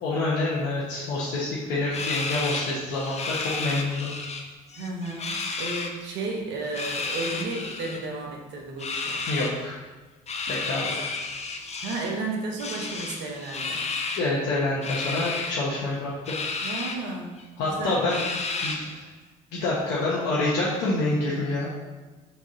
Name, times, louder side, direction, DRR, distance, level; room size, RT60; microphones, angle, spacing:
voice 1, 0.0-4.1 9.3-9.7 10.5-11.0 14.1-16.3 17.6-18.2 18.6-19.0 19.5-21.7, left 2 dB, 85° left, -7 dB, 1.1 m, -27 dB
sound 1, 1.9-4.4 4.7-5.9 6.6-8.0 8.8-9.5 10.3-12.1 12.6-14.3 14.8-15.5 16.3-17.0 17.4-17.5 18.1-19.0, left 4 dB, 40° left, 0.8 m, -32 dB
voice 2, 4.7-9.2 11.8-13.8 16.6-17.4 17.6-18.1, right 3 dB, 80° right, 0 dB, 1.2 m, -33 dB
4.6 x 3.7 x 5.5 m, 1.2 s
supercardioid pair, 65°, 18 cm